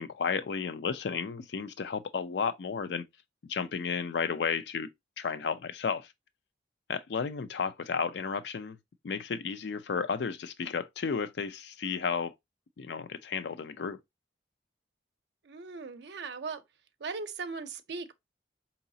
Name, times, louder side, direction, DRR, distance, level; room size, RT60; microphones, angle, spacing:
voice 1, 0.0-3.0 3.4-4.9 5.2-6.1 6.9-8.8 9.0-12.3 12.8-14.0, left 5 dB, 70° left, 0.4 m, -33 dB
voice 2, 15.4-16.6 17.0-18.1, right 4 dB, 70° right, 0.6 m, -38 dB
4.8 x 2.9 x 2.6 m
head